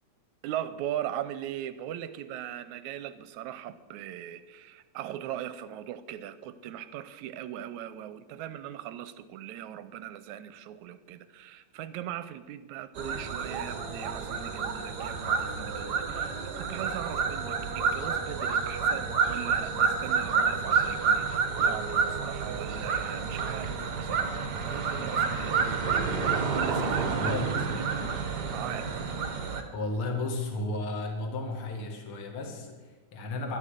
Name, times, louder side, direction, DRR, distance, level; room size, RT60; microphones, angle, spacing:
voice 1, 0.4-27.8 28.5-28.9, right 11 dB, 80° right, 13 dB, 1.9 m, -39 dB
sound 1, 13.0-29.6, right 5 dB, 50° right, 1.2 m, -29 dB
voice 2, 27.1-27.6 29.7-33.6, left 2 dB, 45° left, 3 dB, 2.6 m, -33 dB
12.0 x 12.0 x 6.5 m, 1.3 s
omnidirectional pair, 3.6 m